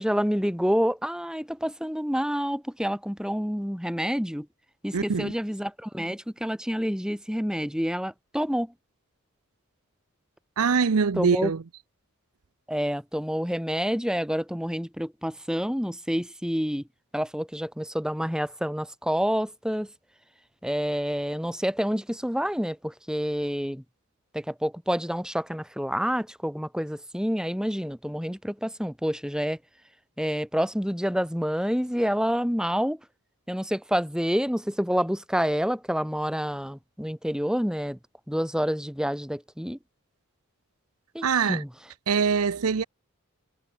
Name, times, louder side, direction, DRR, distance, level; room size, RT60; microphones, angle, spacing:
voice 1, 0.0-4.5 4.8-8.7 11.2-11.5 12.7-16.8 17.1-19.9 20.6-23.8 24.3-29.6 30.2-33.0 33.5-38.0 38.3-39.8 41.1-41.7, equal, 5° right, 4.0 m, -28 dB
voice 2, 4.9-5.3 10.6-11.6 41.2-41.6 42.1-42.8, right 5 dB, 90° right, 0.7 m, -23 dB
head